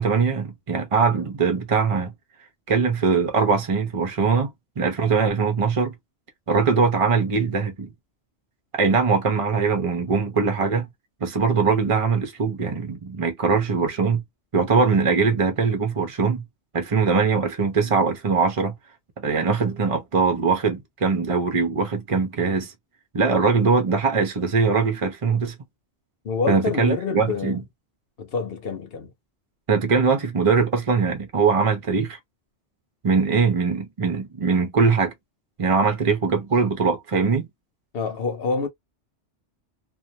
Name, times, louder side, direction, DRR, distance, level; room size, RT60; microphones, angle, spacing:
voice 1, 0.0-2.1 2.7-5.9 6.5-7.9 8.7-10.9 11.2-14.2 14.5-16.4 16.7-18.7 19.2-22.7 23.1-25.6 26.5-27.6 29.7-32.2 33.0-35.1 35.6-37.5, right 5 dB, 35° right, 0.6 m, -21 dB
voice 2, 26.2-27.6 28.2-29.1 37.9-38.7, left 5 dB, 60° left, 1.0 m, -27 dB
2.5 x 2.2 x 2.7 m
omnidirectional pair, 1.2 m